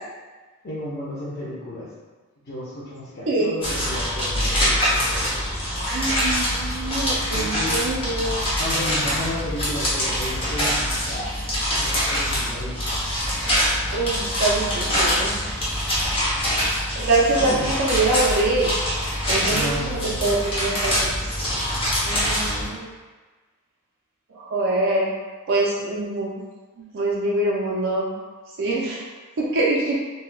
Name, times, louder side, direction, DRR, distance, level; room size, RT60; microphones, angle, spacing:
voice 1, 0.6-1.9 2.4-5.6 7.3-7.8 8.6-11.4 11.7-12.8 17.4-17.7 19.5-20.4, left 1 dB, 45° left, -9 dB, 0.6 m, -33 dB
sound 1, 3.6-22.7, equal, 25° left, 0.9 m, -24 dB
voice 2, 5.9-8.5 13.9-15.4 17.0-18.7 19.3-20.9 22.0-22.9 24.3-25.1 25.5-26.4 26.9-28.1 28.6-29.0 29.4-29.9, right 2 dB, 60° right, -4 dB, 0.4 m, -24 dB
4.0 x 2.1 x 2.2 m, 1.3 s
head